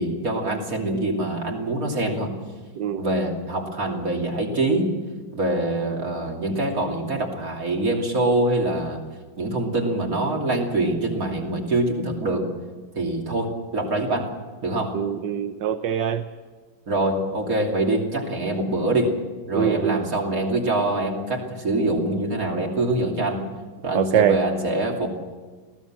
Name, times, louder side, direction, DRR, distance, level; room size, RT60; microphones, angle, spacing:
voice 1, 0.0-2.3 3.0-4.9 5.3-9.0 9.4-12.4 12.9-14.3 14.6-15.0 16.9-19.2 19.5-23.4 23.8-25.1, right 2 dB, 45° right, 1 dB, 3.3 m, -24 dB
voice 2, 2.8-3.1 14.9-16.2 19.5-20.0 23.9-24.4, right 9 dB, 65° right, 8 dB, 1.4 m, -23 dB
22.5 x 16.5 x 7.5 m, 1.4 s
omnidirectional pair, 2.2 m